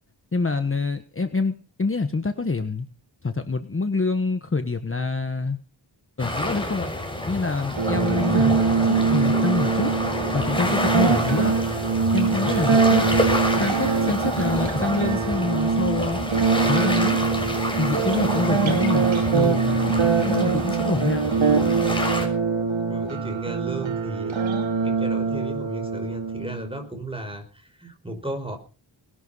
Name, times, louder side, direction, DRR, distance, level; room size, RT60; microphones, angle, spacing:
voice 1, 0.3-2.9 3.2-5.6 6.2-6.9 7.3-9.9 10.3-11.6 12.1-13.1 13.6-16.2 16.7-17.2 17.8-21.2, left 3 dB, 30° left, 8 dB, 1.3 m, -26 dB
sound 1, 6.2-22.3, left 1 dB, 10° left, 6.0 m, -28 dB
sound 2, 7.7-26.7, right 5 dB, 80° right, 2.5 m, -23 dB
voice 2, 22.9-24.3 24.8-28.6, right 1 dB, 10° right, 6 dB, 4.8 m, -35 dB
20.0 x 11.5 x 5.6 m, 0.36 s
wide cardioid pair, 105°, 45 cm